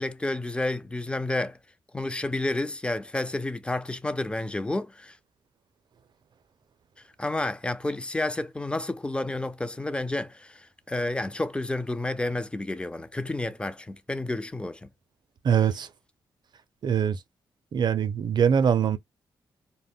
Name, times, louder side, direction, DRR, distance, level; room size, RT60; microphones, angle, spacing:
voice 1, 0.0-1.6 1.9-5.2 7.2-14.9, left 2 dB, 10° left, 0.4 m, -30 dB
voice 2, 15.4-15.9 16.8-17.2 17.7-19.0, right 8 dB, 55° right, 0.5 m, -23 dB
2.1 x 2.1 x 3.5 m
cardioid pair, 70°, 9 cm